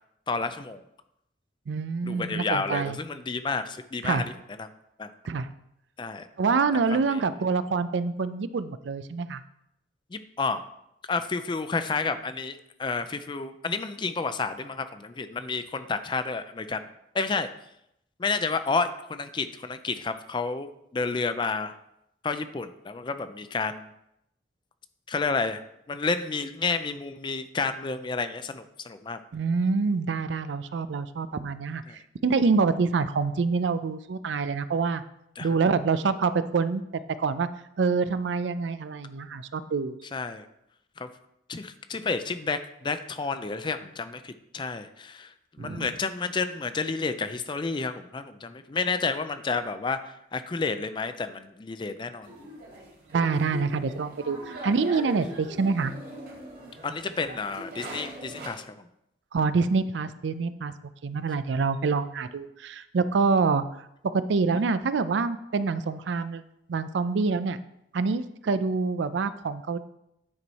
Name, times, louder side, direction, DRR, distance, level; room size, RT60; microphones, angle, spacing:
voice 1, 0.3-0.8 2.0-4.3 4.6-4.7 5.0-5.1 6.0-6.3 6.7-7.2 10.1-10.6 11.1-16.9 17.1-17.5 18.2-21.7 22.2-23.9 25.1-25.6 25.9-29.2 31.9-32.0 35.4-35.5 40.1-40.5 41.0-41.1 41.5-52.4 56.8-58.8, left 4 dB, 25° left, 10 dB, 0.4 m, -30 dB
voice 2, 1.7-3.0 4.0-4.2 5.3-5.5 6.4-9.4 29.3-31.8 32.2-35.0 35.4-36.8 37.2-37.5 37.8-40.0 45.6-45.9 53.1-55.9 59.3-60.7 61.0-63.6 64.0-66.4 66.7-67.6 67.9-69.8, right 4 dB, 90° right, 13 dB, 0.4 m, -26 dB
sound 1, 52.2-58.5, right 1 dB, 55° right, 2.3 m, -41 dB
9.7 x 4.6 x 4.1 m, 0.81 s
head